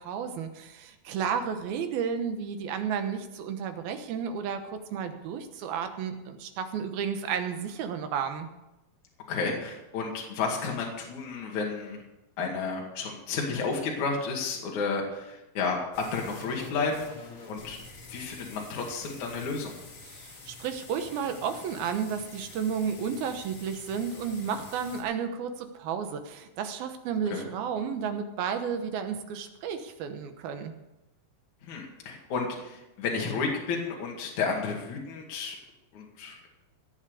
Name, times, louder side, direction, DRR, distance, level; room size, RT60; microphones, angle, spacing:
voice 1, 0.0-8.5 20.1-30.7, right 7 dB, 75° right, 7 dB, 2.9 m, -32 dB
voice 2, 9.3-12.0 12.4-17.1 17.5-17.8 18.1-19.8 27.3-27.4 31.6-35.6 35.9-36.5, left 4 dB, 55° left, -1 dB, 3.3 m, -32 dB
sound 1, 15.9-25.0, left 3 dB, 40° left, 2.7 m, -47 dB
17.5 x 7.3 x 6.9 m, 0.93 s
omnidirectional pair, 4.4 m